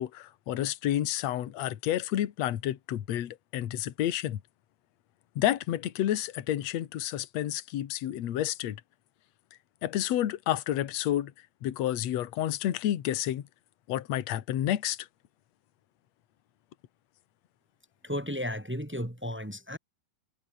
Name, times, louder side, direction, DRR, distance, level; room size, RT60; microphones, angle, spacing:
voice 1, 0.0-4.4 5.4-8.8 9.8-11.3 11.6-13.4 13.9-15.1, left 12 dB, 60° left, 1.9 m, -30 dB
voice 2, 18.0-19.8, equal, 15° right, 0.3 m, -34 dB
omnidirectional pair, 4.7 m